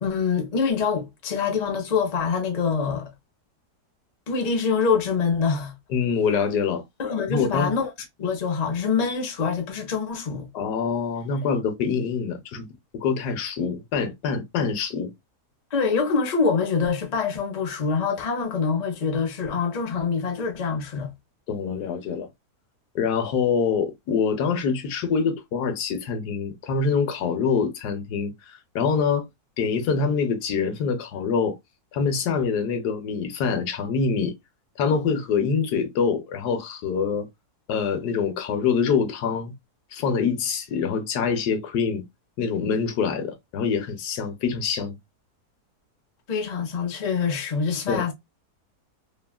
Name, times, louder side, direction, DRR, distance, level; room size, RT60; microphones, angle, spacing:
voice 1, 0.0-3.1 4.3-5.7 7.0-7.9 8.2-10.5 15.7-21.1 46.3-48.1, left 5 dB, 40° left, 0.6 m, -25 dB
voice 2, 5.9-6.8 7.3-7.8 10.5-12.7 12.9-15.1 21.5-22.3 22.9-29.2 29.6-31.6 31.9-34.3 34.8-37.3 37.7-39.5 39.9-42.0 42.4-45.0 47.9-48.0, left 6 dB, 80° left, 1.2 m, -25 dB
3.2 x 2.3 x 2.2 m
omnidirectional pair, 1.7 m